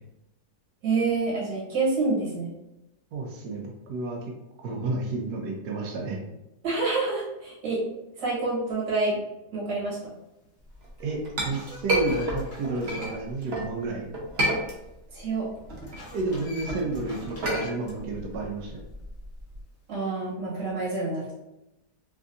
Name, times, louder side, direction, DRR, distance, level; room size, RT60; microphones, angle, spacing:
voice 1, 0.8-2.5 6.6-7.8 8.2-9.2 9.5-10.0 15.1-15.5 19.9-21.3, right 3 dB, 90° right, -6 dB, 1.9 m, -27 dB
voice 2, 3.1-4.2 4.6-6.2 11.0-14.1 16.1-18.8, right 3 dB, 75° right, -1 dB, 1.1 m, -31 dB
sound 1, 10.4-10.5 11.1-13.4 13.8-13.9 15.8-17.9, left 1 dB, 35° left, 0.9 m, -46 dB
Chink clink, 10.8-13.7 14.1-15.2 15.5-19.6, right 1 dB, 55° right, 0.7 m, -30 dB
3.5 x 2.6 x 2.4 m, 0.91 s
omnidirectional pair, 1.8 m